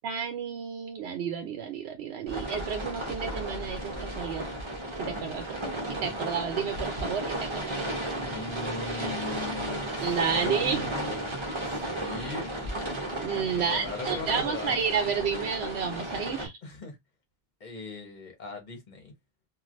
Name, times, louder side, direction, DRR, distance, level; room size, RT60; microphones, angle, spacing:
voice 1, 0.0-4.4 4.9-7.8 10.0-10.9 13.2-16.5, right 6 dB, 85° right, 0.8 m, -31 dB
sound 1, 2.3-16.5, right 1 dB, 30° right, 0.9 m, -34 dB
voice 2, 8.2-11.2 11.7-12.5 13.5-14.9 16.6-17.0 17.6-19.1, left 3 dB, 50° left, 1.2 m, -40 dB
3.1 x 2.5 x 2.5 m
omnidirectional pair, 1.0 m